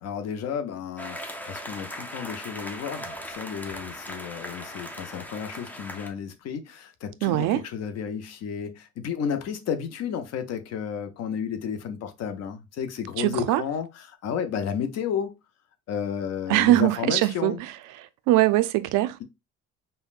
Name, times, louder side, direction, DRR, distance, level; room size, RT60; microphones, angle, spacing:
voice 1, 0.0-15.3 15.9-17.6, left 7 dB, 55° left, 0.6 m, -32 dB
sound 1, 1.0-6.1, equal, 5° left, 0.3 m, -38 dB
voice 2, 7.2-7.6 13.2-13.6 16.5-17.7 18.0-19.2, right 16 dB, 80° right, 0.5 m, -22 dB
5.3 x 2.1 x 2.4 m
cardioid pair, 150°, 31 cm